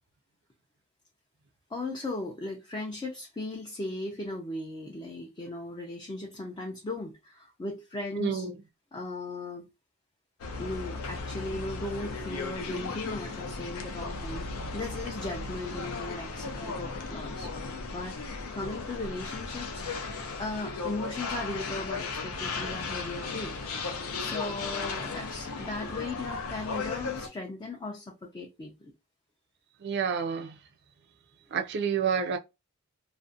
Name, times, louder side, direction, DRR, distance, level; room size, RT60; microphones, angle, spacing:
voice 1, 1.7-8.5 8.9-9.7 10.6-14.5 14.7-18.1 18.5-19.9 20.4-23.5 24.2-28.9, left 2 dB, 20° left, 0.3 m, -37 dB
voice 2, 8.2-8.5 29.8-30.5 31.5-32.4, right 6 dB, 50° right, 0.4 m, -29 dB
sound 1, 10.4-27.3, left 4 dB, 90° left, 0.5 m, -36 dB
2.5 x 2.1 x 2.5 m
head